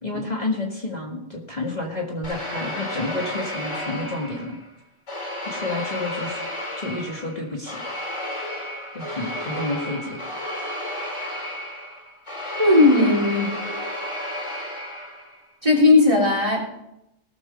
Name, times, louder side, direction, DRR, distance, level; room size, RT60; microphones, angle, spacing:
voice 1, 0.0-4.6 5.4-6.4 6.8-7.8 8.9-10.2 10.6-10.7, left 2 dB, 35° left, -1 dB, 1.9 m, -30 dB
sound 1, 2.2-4.7 5.1-15.4, left 1 dB, 75° left, 3.9 m, -32 dB
voice 2, 12.6-13.5 15.6-16.7, left 2 dB, 25° right, -2 dB, 3.8 m, -17 dB
18.5 x 7.6 x 5.4 m, 0.88 s
omnidirectional pair, 1.3 m